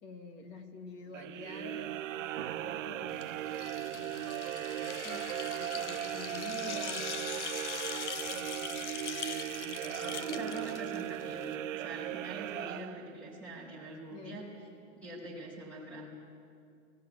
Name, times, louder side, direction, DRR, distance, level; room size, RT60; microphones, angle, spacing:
voice 1, 0.0-3.3 3.9-7.8 8.3-9.0 9.6-10.6 14.1-14.4, left 4 dB, 30° left, 6 dB, 1.7 m, -49 dB
sound 1, 1.1-13.4, right 12 dB, 80° right, 0.7 m, -38 dB
Keyboard (musical), 2.3-9.8, right 14 dB, 35° right, 0.6 m, -49 dB
sound 2, 3.1-11.5, left 9 dB, 65° left, 1.2 m, -42 dB
voice 2, 10.2-11.5 11.7-14.5 15.0-16.1, right 2 dB, 5° left, -4 dB, 5.0 m, -44 dB
18.5 x 17.0 x 9.5 m, 2.4 s
hypercardioid pair, 155°, 38 cm